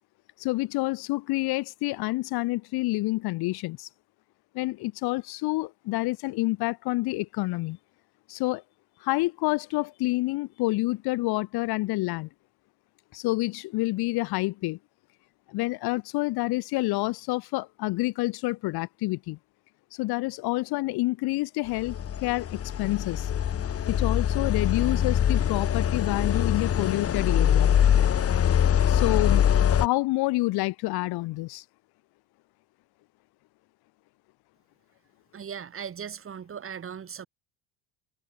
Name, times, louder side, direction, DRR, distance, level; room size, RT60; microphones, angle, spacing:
voice 1, 0.4-3.9 4.5-7.8 8.3-8.6 9.0-12.3 13.1-14.8 15.5-19.4 19.9-23.3 23.8-27.7 28.8-31.6, left 21 dB, 70° left, 3.9 m, -28 dB
sound 1, 21.8-29.9, left 9 dB, 35° left, 2.4 m, -23 dB
voice 2, 35.3-37.3, right 7 dB, 35° right, 5.7 m, -38 dB
cardioid pair, 120°, 39 cm